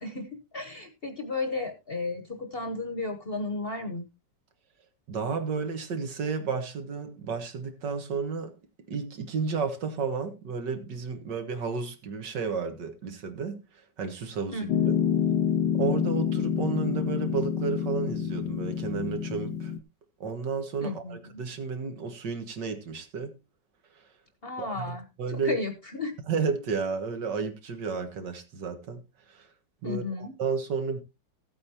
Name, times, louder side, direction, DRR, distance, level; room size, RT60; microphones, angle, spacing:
voice 1, 0.0-4.1 14.5-15.1 20.8-21.2 24.4-25.1 25.4-26.1 29.8-30.3, left 3 dB, 40° left, 1.1 m, -34 dB
voice 2, 5.1-8.5 8.9-13.6 14.0-14.9 15.7-19.7 20.2-23.3 24.0-24.1 24.6-25.6 26.3-29.0 29.3-29.5 29.8-31.0, right 5 dB, 70° right, 2.1 m, -32 dB
Piano, 14.7-19.8, left 8 dB, 80° left, 1.4 m, -27 dB
15.5 x 8.5 x 2.8 m
omnidirectional pair, 2.0 m